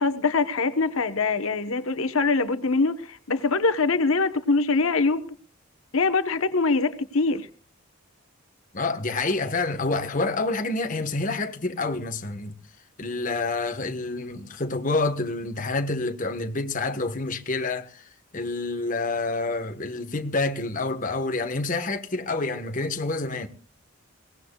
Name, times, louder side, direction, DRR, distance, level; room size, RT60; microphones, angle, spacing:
voice 1, 0.0-5.3 5.9-7.5, left 3 dB, 75° left, 1.1 m, -23 dB
voice 2, 8.7-12.5 13.0-18.0 18.3-23.5, left 3 dB, 35° left, 1.3 m, -28 dB
23.0 x 18.5 x 2.3 m
head